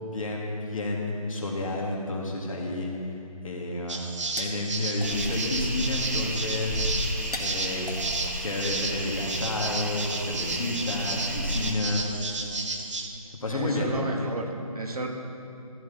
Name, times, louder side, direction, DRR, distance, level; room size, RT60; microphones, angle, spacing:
voice 1, 0.0-2.9 3.4-4.0 4.4-6.9 7.4-7.9 8.4-12.0 13.4-13.9, left 2 dB, 60° left, -1 dB, 2.4 m, -30 dB
sound 1, 3.9-9.2, left 2 dB, 85° left, 2.2 m, -43 dB
sound 2, 3.9-13.1, right 3 dB, 55° right, 1.1 m, -33 dB
sound 3, 5.0-11.7, right 1 dB, 25° right, 0.6 m, -33 dB
voice 2, 13.5-15.1, right 2 dB, 75° right, 2 dB, 1.8 m, -32 dB
14.0 x 8.1 x 4.2 m, 2.7 s
figure-of-eight pair, 170°, 19 cm